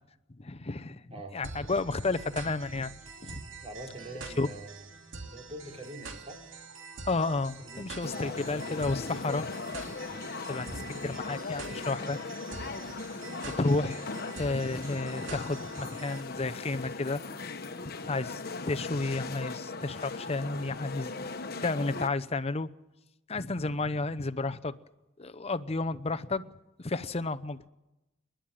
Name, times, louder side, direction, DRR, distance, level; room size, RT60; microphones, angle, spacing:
voice 1, 0.4-1.0 1.3-2.9 3.2-3.4 4.4-4.5 7.1-9.8 10.5-12.2 13.6-14.1 14.4-17.2 17.8-21.3 21.6-22.7 23.3-24.7 25.2-26.5 26.8-27.7, left 3 dB, 30° left, 12 dB, 0.8 m, -32 dB
sound 1, 1.4-16.2, right 4 dB, 90° right, 2.8 m, -45 dB
voice 2, 3.6-4.8 5.3-6.4 7.4-9.1 10.1-10.2 18.0-18.2, right 1 dB, 30° right, 1 dB, 4.1 m, -45 dB
sound 2, 8.0-22.1, left 3 dB, 55° left, 1.2 m, -39 dB
28.5 x 11.5 x 8.9 m, 0.96 s
head